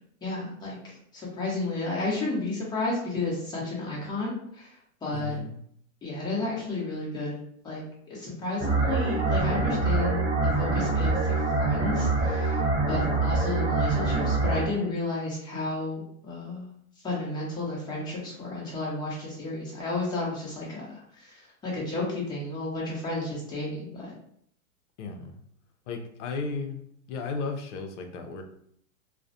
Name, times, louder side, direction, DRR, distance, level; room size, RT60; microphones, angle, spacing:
voice 1, 0.2-0.8 1.3-4.7 5.0-5.4 6.0-7.3 7.6-10.2 10.6-12.6 12.9-16.7 17.0-21.3 21.6-24.1, left 2 dB, 10° left, -5 dB, 0.7 m, -32 dB
voice 2, 5.1-5.6 25.0-25.3 25.9-28.4, left 4 dB, 60° left, 5 dB, 0.6 m, -34 dB
sound 1, 8.6-14.7, right 3 dB, 15° right, 1.3 m, -25 dB
2.3 x 2.1 x 2.6 m, 0.68 s
hypercardioid pair, 130°, 42 cm